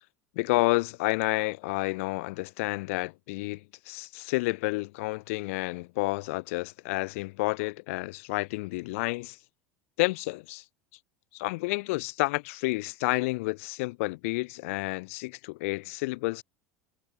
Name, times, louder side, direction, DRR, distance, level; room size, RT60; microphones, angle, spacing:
voice 1, 0.4-9.4 10.0-10.6 11.3-16.4, left 24 dB, 65° left, 2.2 m, -30 dB
figure-of-eight pair, 75°, 8 cm